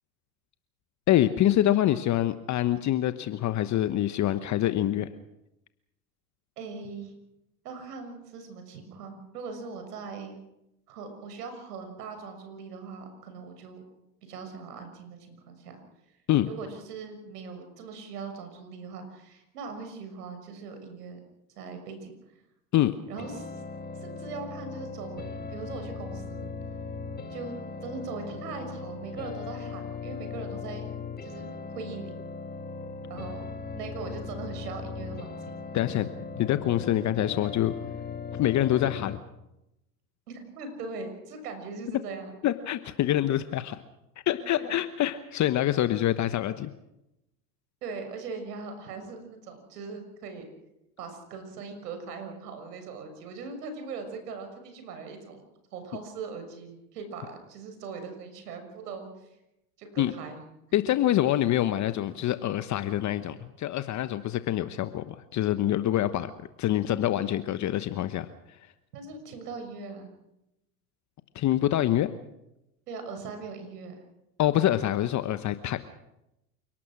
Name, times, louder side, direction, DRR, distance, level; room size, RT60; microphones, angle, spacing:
voice 1, 1.1-5.1 16.3-16.5 22.7-22.9 35.7-36.1 36.4-37.7 38.3-39.2 42.4-43.8 44.3-46.7 60.0-60.1 60.7-66.3 66.6-68.3 71.3-72.1 74.4-75.9, left 13 dB, 35° left, 12 dB, 1.1 m, -25 dB
voice 2, 6.6-7.1 7.6-10.4 10.9-13.8 14.2-15.8 16.5-21.2 21.6-22.1 23.1-23.5 24.0-26.5 27.3-30.9 31.2-32.1 33.1-33.4 33.7-35.6 38.8-39.0 40.3-42.3 43.1-43.3 44.5-44.7 45.8-45.9 47.8-50.4 51.0-55.4 55.7-59.1 59.8-60.4 61.1-61.2 68.9-70.1 72.9-74.0, right 4 dB, 75° right, 6 dB, 6.6 m, -40 dB
sound 1, 23.2-39.2, left 4 dB, 20° left, 3.2 m, -38 dB
29.0 x 18.5 x 6.2 m, 0.88 s
hypercardioid pair, 85°, 48 cm